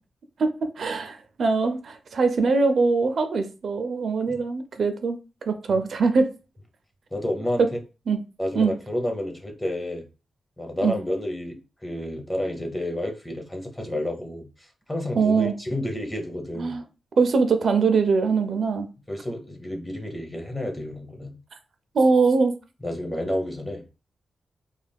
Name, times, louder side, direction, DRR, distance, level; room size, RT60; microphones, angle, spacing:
voice 1, 0.4-5.2 5.5-6.3 8.1-8.2 8.5-8.7 10.8-11.0 15.2-15.5 16.6-16.8 17.2-18.9 21.9-22.5, right 4 dB, 55° right, 0.4 m, -22 dB
voice 2, 7.1-7.6 8.4-10.0 10.6-16.7 19.1-21.4 22.8-23.8, left 1 dB, 10° left, 0.6 m, -30 dB
2.3 x 2.2 x 3.4 m
wide cardioid pair, 140°, 0 cm